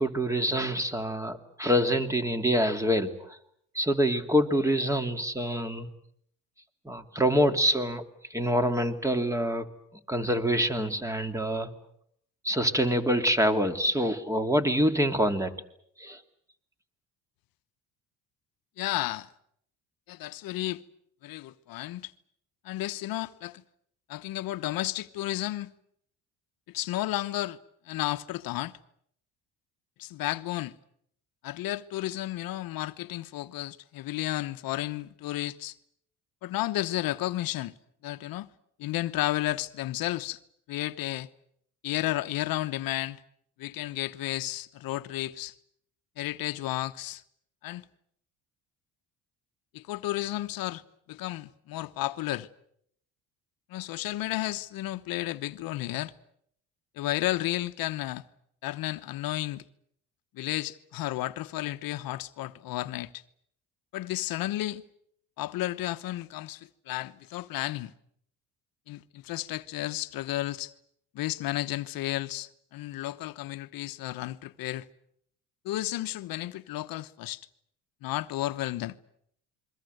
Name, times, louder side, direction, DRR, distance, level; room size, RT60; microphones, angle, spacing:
voice 1, 0.0-3.4 3.7-5.9 6.8-8.0 8.3-9.7 10.1-11.7 12.4-15.5 16.0-16.2, equal, 10° right, 2.5 m, -26 dB
voice 2, 18.8-19.3 20.1-20.8 21.2-22.1 22.6-23.6 24.1-25.7 26.7-27.6 27.8-28.8 30.0-30.7 31.4-35.7 36.4-37.7 38.0-38.5 38.8-40.4 40.7-41.3 41.8-43.2 43.6-45.5 46.2-47.2 47.6-47.9 49.7-50.8 51.1-52.5 53.7-56.1 57.0-58.2 58.6-59.6 60.3-63.2 63.9-64.8 65.4-67.9 68.9-70.7 71.1-74.8 75.6-77.4 78.0-79.0, left 16 dB, 70° left, 1.1 m, -32 dB
29.0 x 23.0 x 7.9 m
cardioid pair, 110°, 36 cm